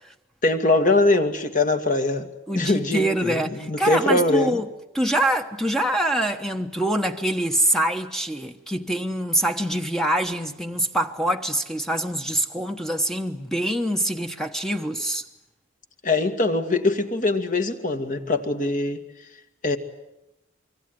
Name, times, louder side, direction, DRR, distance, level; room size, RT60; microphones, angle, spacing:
voice 1, 0.4-2.3 2.6-4.6 16.0-19.0 19.6-19.8, left 2 dB, 40° left, 2.1 m, -22 dB
voice 2, 2.5-4.7 4.9-15.2, right 1 dB, ahead, 1.1 m, -25 dB
26.0 x 24.0 x 9.4 m
head